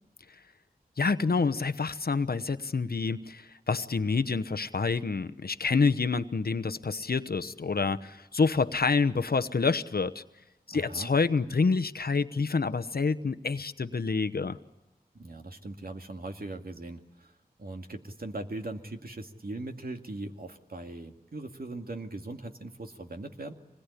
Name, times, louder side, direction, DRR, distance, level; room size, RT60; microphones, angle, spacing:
voice 1, 1.0-10.2 10.7-14.6, left 4 dB, 70° left, 11 dB, 1.0 m, -27 dB
voice 2, 10.7-11.1 15.1-17.3 17.6-23.5, right 2 dB, 65° right, 4 dB, 2.2 m, -40 dB
26.0 x 21.0 x 9.9 m, 0.98 s
wide cardioid pair, 50°, 16 cm